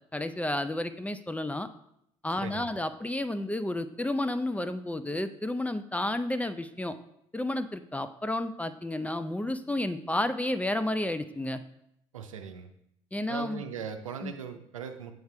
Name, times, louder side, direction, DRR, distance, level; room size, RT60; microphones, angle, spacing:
voice 1, 0.1-1.7 2.2-7.0 7.3-11.6 13.1-13.6 14.2-14.3, left 1 dB, 10° left, 11 dB, 0.4 m, -31 dB
voice 2, 2.4-2.8 12.1-12.7 13.3-15.1, right 6 dB, 90° right, 6 dB, 0.5 m, -39 dB
7.9 x 4.6 x 3.2 m, 0.75 s
hypercardioid pair, 60°, 17 cm